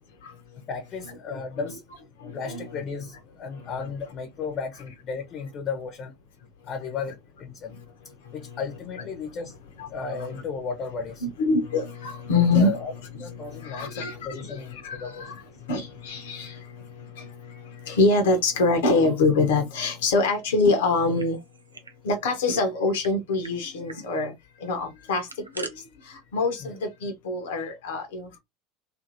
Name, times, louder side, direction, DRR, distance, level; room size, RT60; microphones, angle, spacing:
voice 1, 0.7-1.8 2.3-6.1 6.7-7.7 8.3-9.5 9.9-11.2 12.4-12.9 13.2-15.2 26.6-26.7, left 5 dB, 40° left, 0.8 m, -34 dB
voice 2, 2.2-2.6 9.8-10.3 11.2-12.8 13.1-15.4 15.7-16.6 17.2-17.5 17.8-21.4 22.0-24.3 24.6-25.3 25.6-25.7 26.1-28.4, left 3 dB, 70° left, 0.7 m, -25 dB
sound 1, 20.9-22.0 22.2-22.3 22.6-23.1 23.4-23.5 23.9-24.1 25.0-25.7, right 3 dB, 90° right, 0.4 m, -42 dB
2.8 x 2.6 x 2.6 m
figure-of-eight pair, 75°, 0 cm